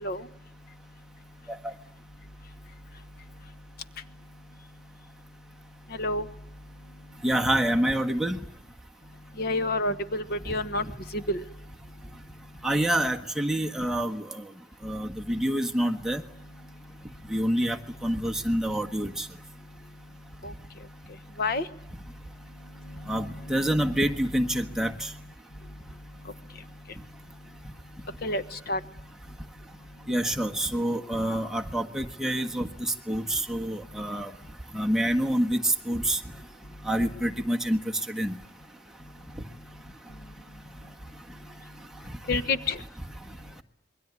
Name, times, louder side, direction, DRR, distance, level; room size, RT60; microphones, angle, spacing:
voice 1, 7.2-8.4 12.6-14.2 14.8-16.2 17.3-19.2 23.1-24.9 30.1-32.7 33.1-34.3 34.7-35.6 35.9-36.2 36.9-37.8 38.1-38.4, right 1 dB, 5° right, 1 dB, 1.5 m, -27 dB
voice 2, 9.4-10.8 11.1-11.4 20.4-20.5 21.4-21.7 23.7-24.0 28.2-28.8 42.3-42.8, left 2 dB, 60° left, 12 dB, 1.2 m, -28 dB
27.5 x 22.5 x 9.7 m, 0.68 s
head